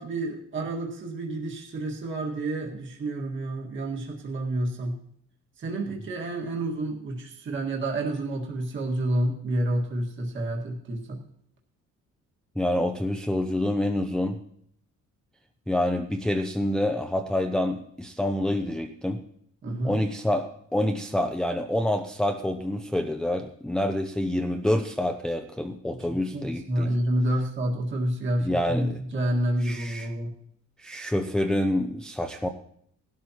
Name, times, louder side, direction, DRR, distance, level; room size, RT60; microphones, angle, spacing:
voice 1, 0.0-5.0 5.6-11.2 19.6-20.0 25.9-30.3, right 1 dB, 40° right, -1 dB, 1.8 m, -29 dB
voice 2, 12.6-14.4 15.7-19.2 19.8-26.9 28.4-29.0 29.6-30.1 30.8-32.5, left 1 dB, ahead, 4 dB, 0.5 m, -27 dB
19.0 x 12.5 x 2.9 m, 0.68 s
cardioid pair, 160°, 30 cm